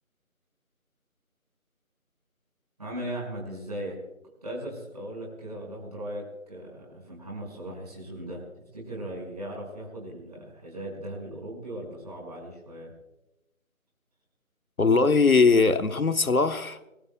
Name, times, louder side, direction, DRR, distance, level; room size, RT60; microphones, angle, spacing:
voice 1, 2.8-4.0 4.4-12.9, right 1 dB, 30° right, 5.6 m, -38 dB
voice 2, 14.8-16.8, left 4 dB, 75° left, 1.2 m, -20 dB
26.5 x 20.5 x 2.3 m
figure-of-eight pair, 170°, 42 cm